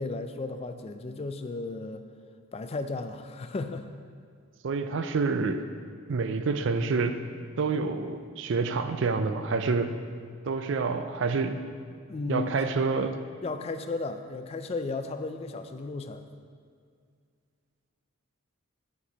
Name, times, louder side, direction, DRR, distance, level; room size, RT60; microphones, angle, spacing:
voice 1, 0.0-2.0 2.5-3.9 12.1-12.5 13.4-16.2, left 3 dB, 30° left, 8 dB, 0.3 m, -34 dB
voice 2, 4.6-5.6 6.1-7.1 7.6-9.9 10.4-11.6 12.3-13.1, right 4 dB, 60° right, 9 dB, 0.4 m, -27 dB
7.0 x 4.4 x 5.0 m, 2.2 s
head